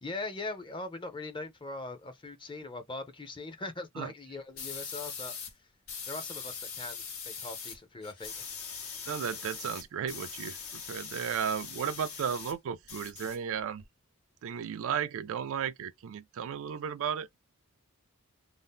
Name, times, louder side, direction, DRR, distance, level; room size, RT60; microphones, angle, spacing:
voice 1, 0.0-5.4 6.1-8.5, left 2 dB, 20° left, 0.6 m, -41 dB
sound 1, 4.6-5.5 5.9-7.8 8.0-12.5 12.8-13.8, left 6 dB, 70° left, 1.0 m, -41 dB
voice 2, 9.1-13.8 14.4-17.3, right 8 dB, 65° right, 0.4 m, -34 dB
2.7 x 2.0 x 3.5 m
head